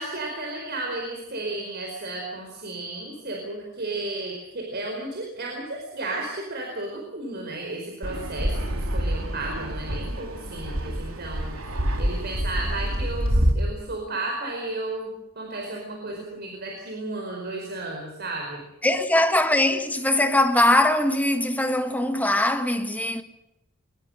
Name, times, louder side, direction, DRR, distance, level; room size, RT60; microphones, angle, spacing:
voice 1, 0.0-11.6 12.0-18.6, right 2 dB, 50° right, 4.8 m, -33 dB
Fixed-wing aircraft airplane, 8.0-13.5, equal, 85° right, 3.0 m, -27 dB
voice 2, 18.8-23.2, left 1 dB, 10° left, 1.7 m, -21 dB
24.0 x 20.5 x 6.6 m
head